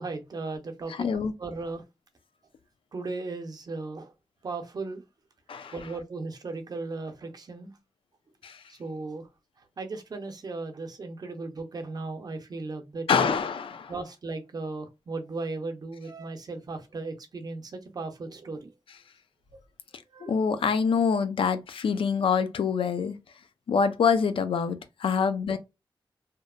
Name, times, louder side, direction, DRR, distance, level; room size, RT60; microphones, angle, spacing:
voice 1, 0.0-1.1 1.4-1.8 2.9-4.1 4.4-5.0 5.7-7.7 8.7-9.3 9.8-13.4 13.9-18.7 19.5-19.6 20.1-20.4, right 3 dB, 45° right, 0.6 m, -36 dB
voice 2, 0.9-1.3 5.5-5.7 8.4-8.6 13.1-13.9 20.2-23.2 23.7-25.6, left 6 dB, 80° left, 0.4 m, -25 dB
2.8 x 2.1 x 2.3 m
wide cardioid pair, 135°, 9 cm